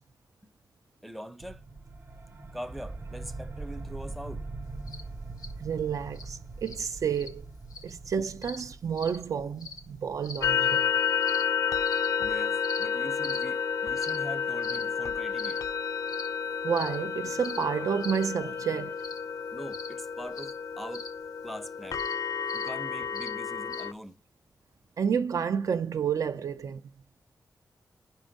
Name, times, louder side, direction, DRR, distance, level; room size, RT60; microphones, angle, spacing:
voice 1, 1.0-1.6 2.5-4.5 12.2-15.6 19.5-21.1 21.4-22.0 22.5-24.2, equal, ahead, 0.5 m, -42 dB
sound 1, 1.4-11.6, right 3 dB, 45° right, 0.7 m, -43 dB
sound 2, 4.9-5.0 5.4-5.5 6.1-6.3 6.7-6.8 7.1-7.3 7.7-7.9 8.4-8.6 9.0-9.2 9.6-9.8 10.2-10.4 11.2-11.4 11.8-12.1 12.6-12.8 13.2-13.4 14.0-14.2 14.6-14.8 15.4-15.6 16.1-16.3 16.7-17.0 17.4-17.6 18.0-18.2 19.0-19.2 19.7-19.9 20.3-20.5 20.9-21.1 21.9-22.1 22.5-22.7 23.1-23.3 23.7-23.8, left 3 dB, 90° left, 1.0 m, -41 dB
voice 2, 5.6-7.5 7.8-10.9 16.6-19.0 25.0-26.8, right 7 dB, 60° right, 0.3 m, -30 dB
sound 3, 10.4-23.9, left 7 dB, 60° left, 0.4 m, -30 dB
5.2 x 4.4 x 5.1 m
wide cardioid pair, 95°, 6 cm